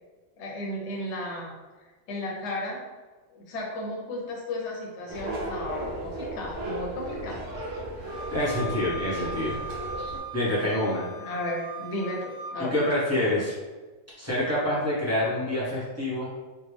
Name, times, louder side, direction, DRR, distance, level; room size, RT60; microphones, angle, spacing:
voice 1, 0.4-1.5 2.1-2.8 3.3-7.4 11.2-12.8, left 1 dB, 60° left, -3 dB, 1.0 m, -34 dB
sound 1, 5.1-10.2, right 1 dB, 65° right, 0.9 m, -35 dB
Wind instrument woodwind instrument, 8.1-12.6, right 1 dB, 50° right, 0.5 m, -39 dB
voice 2, 8.3-9.6 10.0-11.1 12.6-13.5 14.2-16.3, left 1 dB, 15° right, -9 dB, 0.8 m, -27 dB
3.4 x 2.2 x 3.2 m, 1.3 s
omnidirectional pair, 1.4 m